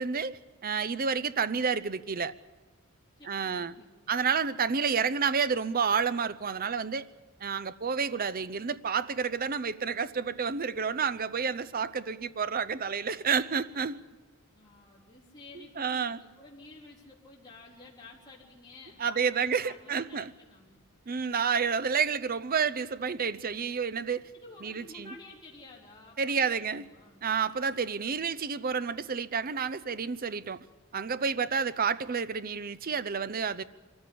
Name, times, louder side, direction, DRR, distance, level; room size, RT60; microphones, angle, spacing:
voice 1, 0.0-2.3 3.2-3.8 4.1-7.1 7.4-14.0 15.5-16.2 19.0-20.3 21.1-24.3 24.6-25.1 26.2-26.9 27.2-30.7 30.9-33.6, right 6 dB, 40° right, 0.6 m, -30 dB
voice 2, 3.2-4.1 14.5-20.8 24.3-27.2, left 2 dB, 20° left, 3.9 m, -52 dB
24.5 x 14.0 x 8.6 m
head